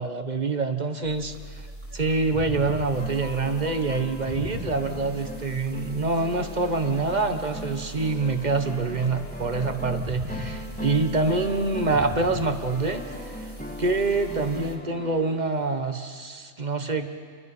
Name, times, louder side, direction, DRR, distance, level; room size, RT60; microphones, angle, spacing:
voice 1, 0.0-1.6 1.9-13.3 13.8-17.1, right 3 dB, 35° right, 7 dB, 1.3 m, -26 dB
sound 1, 1.0-14.8, equal, 10° right, 2.7 m, -39 dB
sound 2, 2.9-15.4, equal, 5° left, 1.5 m, -39 dB
29.0 x 23.5 x 5.6 m, 2.1 s
omnidirectional pair, 1.4 m